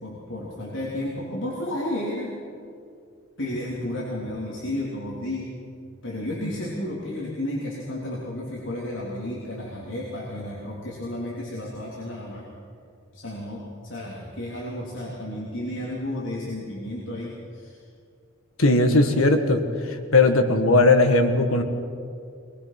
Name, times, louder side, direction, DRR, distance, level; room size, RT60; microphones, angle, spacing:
voice 1, 0.0-2.3 3.4-5.5 6.0-12.5 13.1-17.8, left 1 dB, 65° left, -6 dB, 3.5 m, -32 dB
voice 2, 18.6-19.6 20.1-21.6, left 2 dB, 90° left, 6 dB, 1.8 m, -18 dB
22.5 x 21.0 x 6.0 m, 2.3 s
head